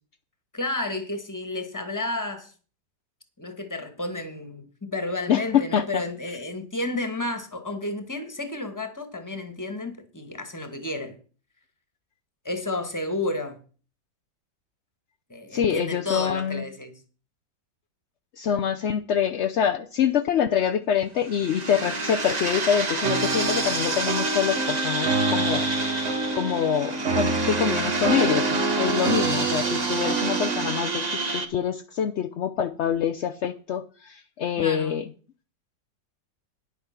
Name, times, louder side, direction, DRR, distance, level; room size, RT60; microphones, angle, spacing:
voice 1, 0.5-2.5 3.4-11.2 12.4-13.6 15.3-17.0 34.6-35.0, left 2 dB, 10° left, 1.5 m, -31 dB
voice 2, 5.3-6.0 15.5-16.6 18.4-26.0 26.3-35.1, left 8 dB, 70° left, 0.6 m, -25 dB
sound 1, 21.2-31.4, right 3 dB, 25° right, 1.1 m, -28 dB
sound 2, 23.0-30.8, right 3 dB, 45° right, 1.4 m, -28 dB
10.5 x 8.2 x 5.8 m
omnidirectional pair, 1.9 m